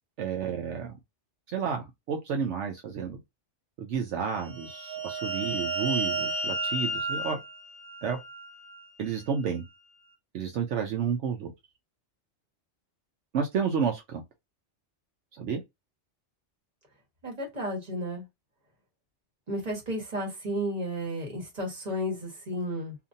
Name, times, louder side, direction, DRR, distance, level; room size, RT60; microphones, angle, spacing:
voice 1, 0.2-1.0 1.5-3.2 3.8-7.4 8.0-8.2 9.0-9.6 10.3-11.5 13.3-14.2 15.3-15.6, right 6 dB, 75° right, 0.9 m, -31 dB
sound 1, 4.4-8.8, right 2 dB, 55° right, 1.1 m, -32 dB
voice 2, 17.2-18.2 19.5-23.0, equal, 35° right, 1.4 m, -33 dB
2.8 x 2.5 x 2.6 m
omnidirectional pair, 1.2 m